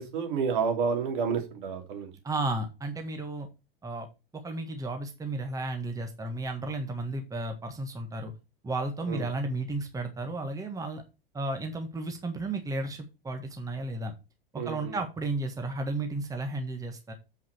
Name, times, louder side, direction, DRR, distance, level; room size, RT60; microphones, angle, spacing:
voice 1, 0.0-2.1 9.1-9.2 14.6-15.0, right 6 dB, 60° right, 4 dB, 3.0 m, -30 dB
voice 2, 2.2-3.5 3.8-4.1 4.3-8.3 8.6-11.0 11.3-14.1 14.5-17.1, right 2 dB, 10° right, 5 dB, 1.5 m, -33 dB
7.6 x 5.8 x 4.5 m, 0.27 s
figure-of-eight pair, 95°, 29 cm